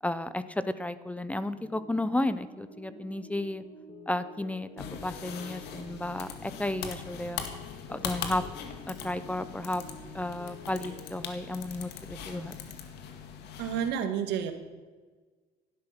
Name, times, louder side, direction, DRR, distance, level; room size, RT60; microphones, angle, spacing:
voice 1, 0.0-3.6 4.1-7.4 7.9-8.4 8.9-9.8 10.1-12.5, left 1 dB, 10° left, 13 dB, 0.7 m, -33 dB
sound 1, 1.6-11.2, left 1 dB, 35° left, 3.1 m, -49 dB
sound 2, 4.8-13.9, left 7 dB, 80° left, 1.9 m, -41 dB
voice 2, 13.6-14.5, right 8 dB, 90° right, 7 dB, 1.8 m, -30 dB
16.5 x 11.5 x 5.8 m, 1.4 s
cardioid pair, 110°, 17 cm